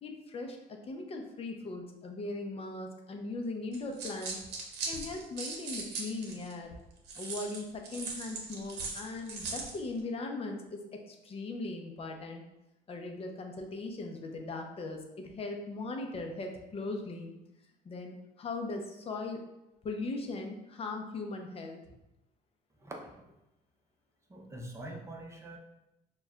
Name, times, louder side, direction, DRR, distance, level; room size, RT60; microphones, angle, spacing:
voice 1, 0.0-4.4 4.8-6.7 7.1-12.4 12.9-17.3 17.8-19.4 19.8-21.8, left 2 dB, 35° left, 3 dB, 0.6 m, -39 dB
sound 1, 3.7-6.5 7.1-9.8, right 4 dB, 80° right, 0.8 m, -39 dB
voice 2, 22.8-23.1 24.3-25.6, right 1 dB, 15° right, 0 dB, 0.7 m, -44 dB
6.0 x 2.3 x 2.4 m, 0.91 s
cardioid pair, 110°, 17 cm